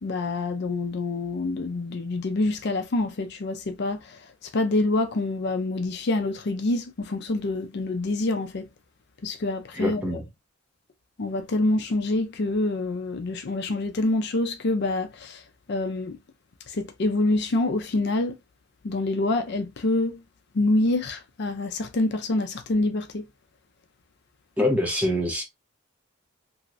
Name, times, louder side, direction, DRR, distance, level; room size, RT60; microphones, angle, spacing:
voice 1, 0.0-8.7 9.2-10.2 11.2-15.4 15.7-16.2 16.7-18.4 18.8-20.2 20.5-23.2, left 2 dB, 55° left, 0.5 m, -26 dB
voice 2, 9.8-10.2 24.6-25.4, left 1 dB, 5° right, 1.0 m, -24 dB
3.0 x 2.8 x 2.4 m
head